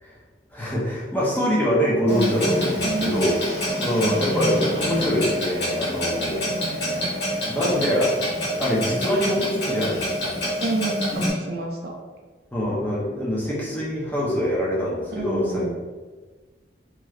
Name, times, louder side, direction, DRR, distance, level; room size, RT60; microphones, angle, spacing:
voice 1, 0.5-3.4 3.8-6.4 7.4-10.4 12.5-15.7, equal, 10° left, -6 dB, 0.6 m, -24 dB
Clock, 2.1-11.3, equal, 75° left, 1.1 m, -26 dB
voice 2, 2.8-3.3 6.3-7.1 10.6-11.9 15.1-15.7, right 2 dB, 55° right, 0 dB, 0.5 m, -29 dB
3.1 x 2.9 x 2.4 m, 1.3 s
head